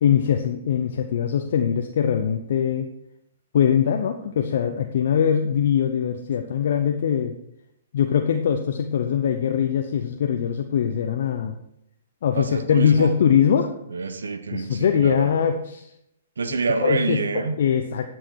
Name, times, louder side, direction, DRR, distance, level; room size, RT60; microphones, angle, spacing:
voice 1, 0.0-2.9 3.5-7.3 7.9-11.5 12.2-13.7 14.5-15.9 16.8-18.1, left 8 dB, 60° left, 5 dB, 0.7 m, -22 dB
voice 2, 12.3-13.1 13.9-15.3 16.4-17.6, right 4 dB, 80° right, 10 dB, 1.0 m, -27 dB
11.0 x 6.3 x 4.6 m, 0.79 s
hypercardioid pair, 125°, 0 cm